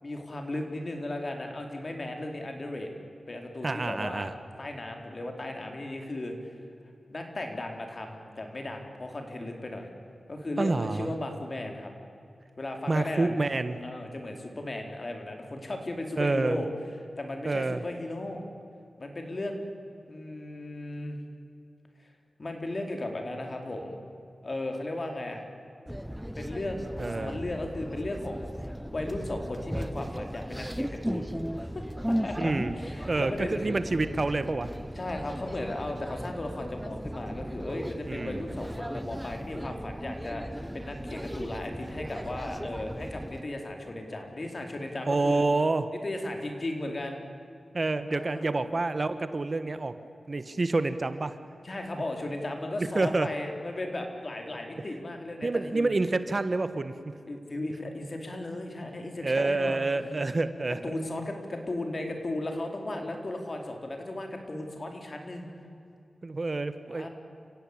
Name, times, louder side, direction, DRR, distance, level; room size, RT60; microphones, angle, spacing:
voice 1, 0.0-2.9 3.3-4.3 4.6-6.6 7.1-9.9 10.3-11.9 12.6-13.3 13.8-16.7 17.2-18.4 19.0-19.6 20.1-21.2 22.0-22.1 22.4-24.0 24.4-25.5 26.3-33.7 35.0-40.4 40.7-45.4 46.0-47.2 48.1-48.5 51.6-55.9 57.2-59.8 60.8-65.5 66.9-67.1, left 1 dB, 45° left, 3 dB, 4.4 m, -36 dB
voice 2, 3.6-4.3 10.6-11.1 12.9-13.8 16.2-16.6 17.4-17.8 27.0-27.4 32.4-32.7 33.1-34.7 38.1-38.4 45.1-45.9 47.7-49.9 50.3-51.4 52.9-53.3 55.4-57.1 59.2-60.8 66.2-67.1, right 3 dB, 45° right, 11 dB, 1.3 m, -28 dB
sound 1, 25.9-43.4, equal, 5° right, 0.9 m, -36 dB
29.0 x 16.5 x 8.8 m, 2.6 s
cardioid pair, 60°, 0 cm